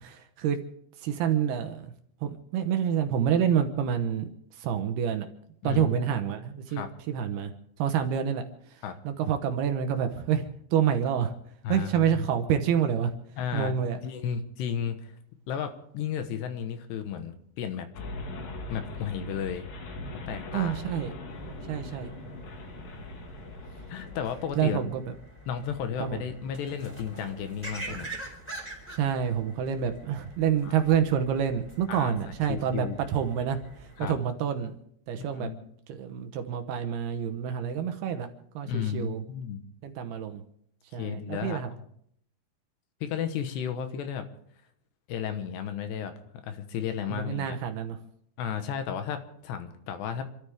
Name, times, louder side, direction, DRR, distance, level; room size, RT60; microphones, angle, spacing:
voice 1, 0.0-0.6 1.0-1.9 2.2-4.3 4.6-5.3 5.6-7.5 7.8-8.4 9.0-10.5 10.7-11.3 11.7-13.1 13.5-14.0 20.5-21.1 21.7-22.1 24.6-25.0 26.0-26.2 28.9-33.6 34.0-34.7 35.1-35.5 35.9-38.3 38.6-39.2 39.8-40.4 40.9-41.7 47.1-48.0, right 8 dB, 70° right, 7 dB, 2.7 m, -27 dB
voice 2, 5.6-6.1 6.7-6.9 8.0-8.1 8.8-9.0 11.6-12.2 13.4-13.7 14.0-15.1 15.5-17.9 18.7-19.6 20.3-20.8 23.9-24.8 25.5-28.1 30.6-30.7 31.9-32.2 32.5-33.0 34.0-34.2 35.3-35.7 38.7-39.6 41.0-41.8 43.0-44.2 45.1-46.1 46.4-47.6 48.4-50.2, left 8 dB, 75° left, 8 dB, 3.2 m, -33 dB
sound 1, 17.9-24.8, left 2 dB, 55° left, 3.3 m, -41 dB
sound 2, 21.3-34.1, right 2 dB, 5° left, 3.7 m, -45 dB
28.5 x 13.0 x 3.6 m, 0.68 s
omnidirectional pair, 5.2 m